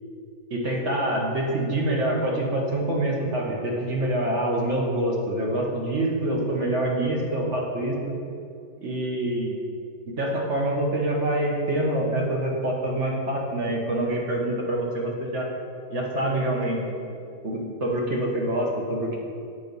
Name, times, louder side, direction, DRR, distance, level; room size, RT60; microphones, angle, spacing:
voice 1, 0.5-8.1 8.8-9.5 10.2-15.5 15.9-16.8 17.4-19.2, right 1 dB, 50° right, -2 dB, 1.3 m, -26 dB
7.8 x 4.6 x 5.3 m, 2.5 s
omnidirectional pair, 1.7 m